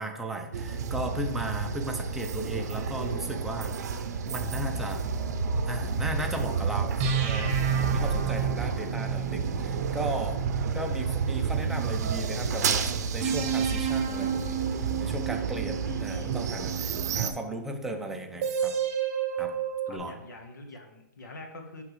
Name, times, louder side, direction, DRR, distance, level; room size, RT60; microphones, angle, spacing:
voice 1, 0.0-3.7 4.3-5.0 5.7-7.5 7.8-10.4 10.7-18.7 19.4-19.5 19.9-20.1, right 1 dB, 5° right, 3 dB, 0.5 m, -36 dB
sound 1, 0.5-17.3, right 6 dB, 60° right, 0.6 m, -31 dB
sound 2, 7.0-12.2 13.2-17.5 18.4-20.0, right 6 dB, 35° right, 0.9 m, -32 dB
voice 2, 15.8-16.4 19.9-21.8, left 1 dB, 75° left, 4 dB, 1.4 m, -43 dB
9.6 x 3.6 x 3.2 m, 0.87 s
hypercardioid pair, 155°, 10 cm